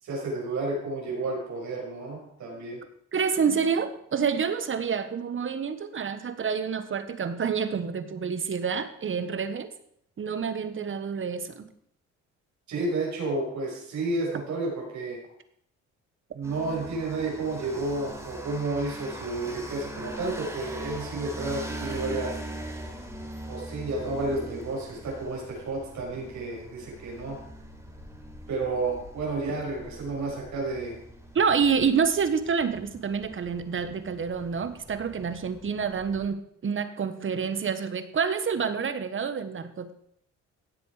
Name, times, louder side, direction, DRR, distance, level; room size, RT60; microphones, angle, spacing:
voice 1, 0.0-2.8 12.7-15.2 16.3-22.4 23.5-27.4 28.5-31.0, right 2 dB, 70° right, -1 dB, 6.2 m, -31 dB
voice 2, 3.1-9.7 10.2-11.6 31.3-39.9, right 6 dB, 40° right, 11 dB, 1.3 m, -28 dB
sound 1, 16.4-36.2, right 1 dB, 10° right, 3.8 m, -42 dB
16.5 x 7.8 x 4.9 m, 0.69 s
cardioid pair, 90°, 30 cm